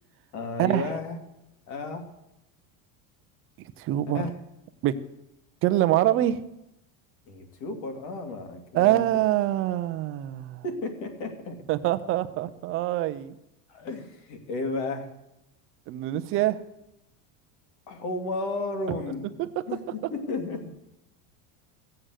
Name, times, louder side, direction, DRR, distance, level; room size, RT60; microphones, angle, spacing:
voice 1, 0.3-1.2 1.7-2.1 4.1-4.3 7.3-9.0 10.6-11.6 13.7-15.1 17.9-19.3 19.7-20.7, left 2 dB, 60° left, 5 dB, 2.6 m, -33 dB
voice 2, 3.8-4.2 4.8-5.0 5.6-6.4 8.7-10.6 11.7-13.3 15.9-16.6 19.4-19.5, right 14 dB, 30° right, 11 dB, 0.5 m, -24 dB
16.0 x 7.7 x 8.1 m, 0.89 s
cardioid pair, 175°, 45 cm